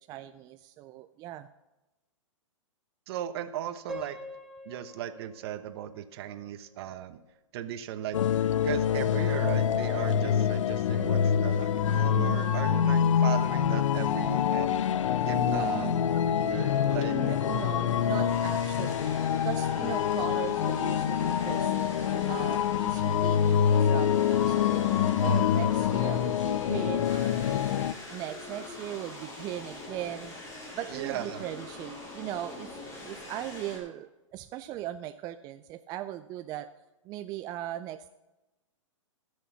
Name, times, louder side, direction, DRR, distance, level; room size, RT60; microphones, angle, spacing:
voice 1, 0.1-1.5 12.1-13.2 15.4-16.1 17.1-21.7 22.3-27.7 28.1-30.3 30.7-32.8 33.0-36.7 37.0-38.1, right 13 dB, 20° right, 9 dB, 0.3 m, -39 dB
voice 2, 3.1-4.2 4.6-7.2 7.5-14.8 15.3-17.2 30.9-31.4, right 11 dB, 50° right, 11 dB, 1.0 m, -37 dB
Piano, 3.9-6.9, left 1 dB, ahead, 1.4 m, -45 dB
sound 1, 8.1-27.9, left 8 dB, 70° left, 0.5 m, -26 dB
sound 2, 16.6-33.8, left 2 dB, 15° left, 3.7 m, -43 dB
15.0 x 6.4 x 5.7 m, 1.0 s
hypercardioid pair, 130°, 17 cm